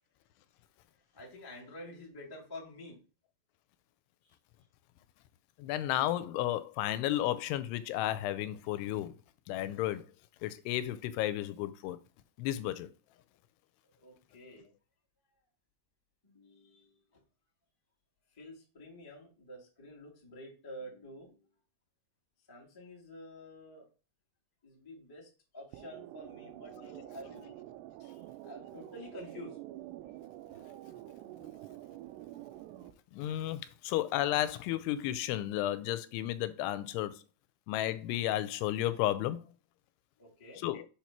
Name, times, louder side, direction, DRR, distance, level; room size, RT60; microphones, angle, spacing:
voice 1, 0.9-3.0 4.2-4.3 13.8-14.7 16.2-17.2 18.3-21.5 22.5-23.8 24.6-27.6 28.0-29.6 40.2-40.6, left 1 dB, 15° left, 0.7 m, -49 dB
voice 2, 5.6-9.1 9.5-10.1 10.4-12.0 12.4-12.9 33.1-37.2 37.7-39.4 40.6-40.9, left 13 dB, 85° left, 2.6 m, -33 dB
sound 1, 25.7-32.9, right 14 dB, 90° right, 2.8 m, -48 dB
6.7 x 3.1 x 5.8 m
omnidirectional pair, 4.7 m